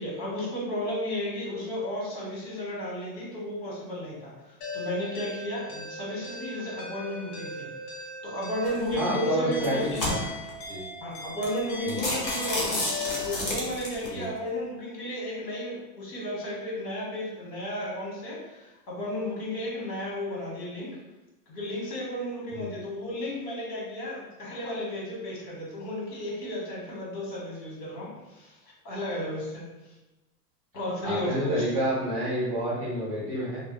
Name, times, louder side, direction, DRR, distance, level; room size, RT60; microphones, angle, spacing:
voice 1, 0.0-7.7 8.2-10.0 11.0-12.8 13.2-21.0 21.5-29.6 30.7-31.6, left 1 dB, 90° left, -4 dB, 1.4 m, -33 dB
sound 1, 4.6-13.3, left 2 dB, 75° left, 0.7 m, -39 dB
Open lid from plastic pot close, 8.6-8.9 9.5-10.5 11.1-11.2 11.4-11.6 11.9-14.1, left 1 dB, 40° left, 0.4 m, -30 dB
voice 2, 8.9-9.8 10.1-10.3 10.7-10.8 11.8-12.0 14.0-14.2 22.5-22.6 31.0-33.6, equal, 25° right, -10 dB, 0.4 m, -29 dB
2.5 x 2.1 x 2.5 m, 1.1 s
supercardioid pair, 180°, 49 cm